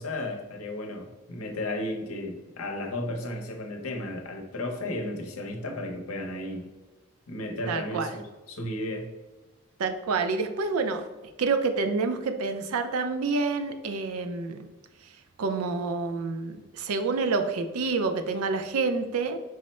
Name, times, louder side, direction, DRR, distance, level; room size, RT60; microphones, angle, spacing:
voice 1, 0.0-6.7 7.3-9.1, left 1 dB, 80° left, 3 dB, 0.7 m, -34 dB
voice 2, 7.7-8.1 9.8-11.1 11.4-14.6 15.4-19.4, right 4 dB, 90° right, 8 dB, 0.4 m, -28 dB
4.8 x 2.1 x 4.1 m, 1.1 s
head